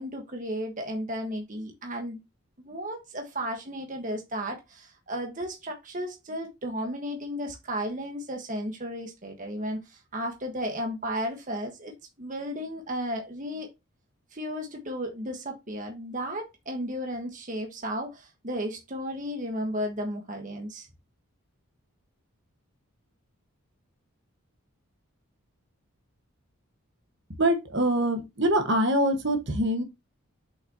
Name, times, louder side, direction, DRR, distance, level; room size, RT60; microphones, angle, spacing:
voice 1, 0.0-2.2 2.6-11.9 12.2-13.7 14.3-20.9, equal, 35° right, 1.3 m, -34 dB
voice 2, 27.4-29.8, right 1 dB, 55° right, 1.4 m, -24 dB
7.3 x 5.8 x 2.8 m
head